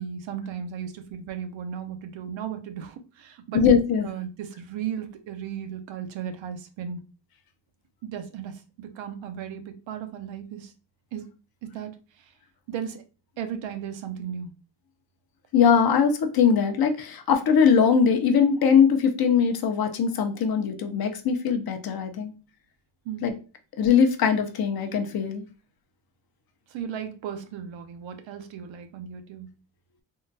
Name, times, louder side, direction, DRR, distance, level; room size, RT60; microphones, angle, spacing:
voice 1, 0.0-3.6 4.0-7.0 8.0-10.7 11.1-11.3 11.6-11.9 12.7-13.0 13.4-14.5 23.1-23.3 26.7-29.5, right 8 dB, 80° right, 0.6 m, -35 dB
voice 2, 3.5-4.1 15.5-22.3 23.2-23.3 23.8-25.4, left 6 dB, 55° left, 0.6 m, -21 dB
3.7 x 2.2 x 2.5 m
cardioid pair, 145°, 45 cm